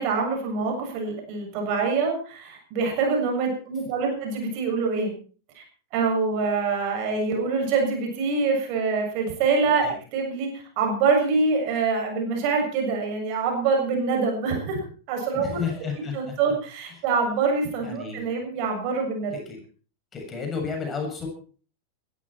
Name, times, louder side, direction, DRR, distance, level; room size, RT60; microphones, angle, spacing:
voice 1, 0.0-5.1 5.6-5.7 5.9-15.6 16.1-19.3, right 4 dB, 45° right, 2 dB, 7.0 m, -25 dB
voice 2, 15.4-16.3 17.8-18.2 19.3-19.6 20.1-21.3, left 5 dB, 20° left, 2 dB, 7.2 m, -32 dB
21.0 x 13.5 x 4.5 m, 0.41 s
figure-of-eight pair, 90°, 0 cm